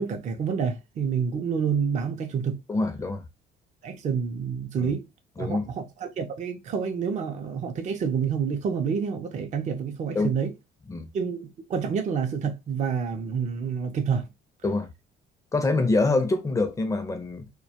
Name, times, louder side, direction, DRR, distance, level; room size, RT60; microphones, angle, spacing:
voice 1, 0.0-2.6 3.8-5.1 5.4-10.5 11.1-14.3, right 6 dB, 40° right, 0.5 m, -28 dB
voice 2, 2.7-3.3 4.8-4.9 5.4-5.7 10.1-10.3 10.9-11.1 14.6-14.9 15.5-17.5, left 3 dB, 15° left, 0.5 m, -25 dB
2.2 x 2.2 x 2.8 m
cardioid pair, 120°, 19 cm